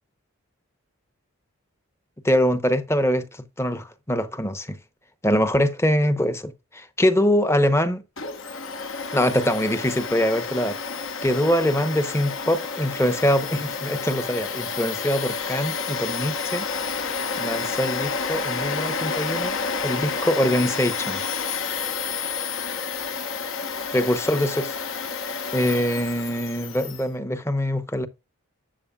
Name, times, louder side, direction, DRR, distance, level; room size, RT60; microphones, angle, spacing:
voice 1, 2.2-3.3 3.6-4.8 5.2-8.0 9.1-10.8 11.2-16.7 17.4-19.6 19.8-21.2 23.9-24.7 25.5-28.1, equal, 10° left, 0.8 m, -23 dB
Domestic sounds home sounds, 8.2-27.0, left 5 dB, 65° left, 1.2 m, -30 dB
12.5 x 7.8 x 2.4 m
head